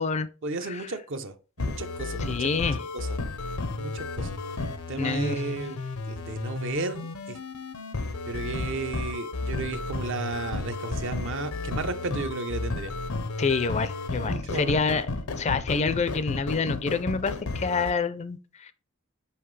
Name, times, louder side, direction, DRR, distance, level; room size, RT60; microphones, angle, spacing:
voice 1, 0.4-2.5 2.9-3.1 3.7-4.4 4.9-5.8 6.1-7.4 8.3-12.9 14.2-14.7, right 3 dB, 60° right, 0.7 m, -34 dB
sound 1, 1.6-17.9, left 3 dB, 85° left, 0.8 m, -33 dB
voice 2, 2.2-2.8 5.0-5.5 13.4-15.1 15.4-18.7, left 4 dB, 30° left, 0.4 m, -27 dB
5.6 x 5.3 x 3.2 m
head